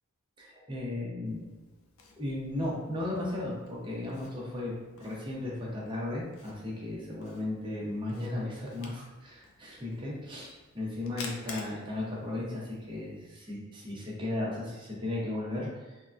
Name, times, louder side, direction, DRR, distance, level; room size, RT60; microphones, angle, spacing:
voice 1, 0.4-1.4 2.2-16.0, left 2 dB, 20° right, -4 dB, 0.7 m, -35 dB
Camera, 1.3-13.3, left 4 dB, 65° left, 0.4 m, -51 dB
3.5 x 2.1 x 2.4 m, 1.2 s
head